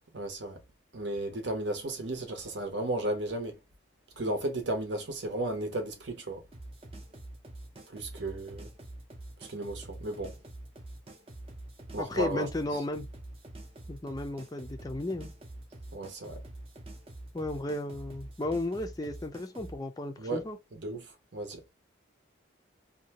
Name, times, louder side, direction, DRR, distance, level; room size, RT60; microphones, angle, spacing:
voice 1, 0.1-0.6 0.9-3.6 4.2-6.4 7.9-8.7 9.5-10.3 11.9-12.5 15.9-16.4 20.2-20.4 20.7-21.0 21.3-21.6, right 1 dB, 60° right, 0.8 m, -34 dB
sound 1, 6.5-19.8, right 1 dB, 30° right, 0.6 m, -46 dB
voice 2, 12.0-13.1 13.9-15.3 17.3-20.6, left 2 dB, 20° left, 0.4 m, -34 dB
2.7 x 2.2 x 2.8 m
head